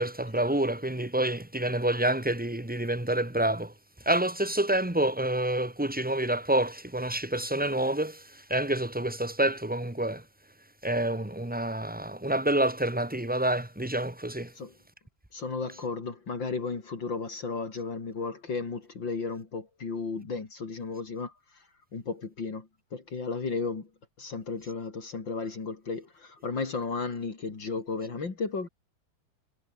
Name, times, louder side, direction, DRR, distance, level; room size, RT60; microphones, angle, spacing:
voice 1, 0.0-3.7 4.0-8.2 8.5-10.2 10.8-14.5, right 1 dB, 5° right, 1.6 m, -28 dB
voice 2, 15.3-21.3 21.9-23.9 24.2-28.7, left 4 dB, 60° left, 4.0 m, -34 dB
omnidirectional pair, 2.3 m